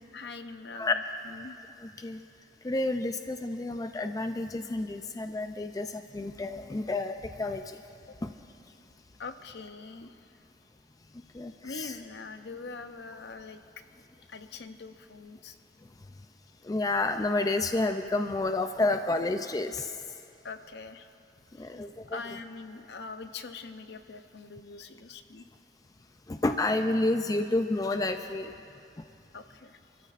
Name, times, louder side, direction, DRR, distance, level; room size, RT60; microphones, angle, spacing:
voice 1, 0.1-1.6 8.1-8.2 9.2-10.1 11.6-13.6 14.3-15.6 20.4-21.1 21.6-21.8 22.1-25.5 29.3-29.8, left 4 dB, 65° left, 9 dB, 0.7 m, -43 dB
voice 2, 2.6-7.8 8.2-8.3 11.3-12.0 16.6-19.9 21.6-22.2 26.3-28.5, left 2 dB, 20° left, 7 dB, 0.4 m, -30 dB
27.5 x 14.0 x 2.5 m, 2.6 s
head